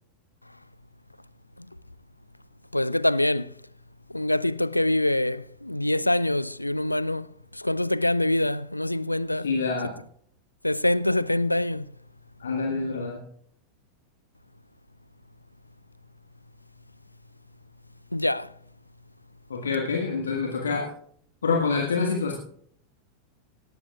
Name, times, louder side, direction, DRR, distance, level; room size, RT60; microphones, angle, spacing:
voice 1, 2.7-3.5 4.1-7.3 7.6-9.5 10.6-11.8 18.1-18.5, left 1 dB, 85° left, 0.4 m, -24 dB
voice 2, 9.4-9.9 12.4-13.2 19.5-20.9 21.4-22.3, left 4 dB, 70° left, 1.5 m, -26 dB
18.5 x 13.0 x 2.3 m
figure-of-eight pair, 90°, 0 cm